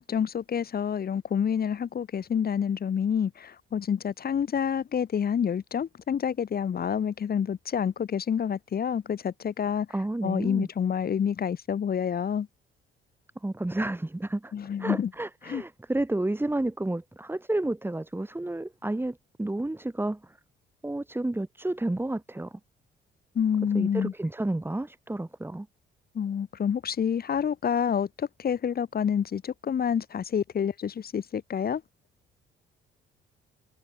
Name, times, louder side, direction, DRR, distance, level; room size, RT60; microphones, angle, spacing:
voice 1, 0.0-9.9 10.2-12.5 14.5-15.1 15.5-15.6 23.4-24.1 26.1-31.8, left 8 dB, 50° left, 2.4 m, -28 dB
voice 2, 9.9-10.7 13.4-14.5 14.8-20.2 20.8-22.5 23.6-25.7, right 2 dB, 10° right, 3.3 m, -31 dB
cardioid pair, 90°, 20 cm